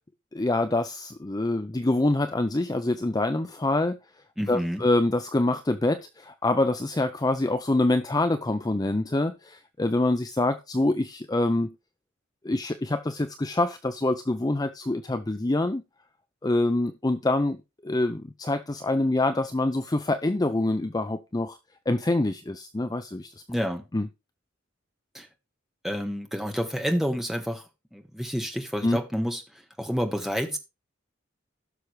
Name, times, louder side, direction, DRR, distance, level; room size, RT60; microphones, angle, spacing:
voice 1, 0.3-4.0 4.5-11.7 12.4-15.8 16.4-17.6 17.8-21.6 21.9-23.3 23.9-24.1 28.8-29.0, left 2 dB, 20° left, 0.5 m, -25 dB
voice 2, 4.4-4.8 23.5-23.9 25.1-25.3 25.8-27.6 27.9-30.6, equal, ahead, 1.4 m, -29 dB
16.0 x 6.3 x 3.2 m
head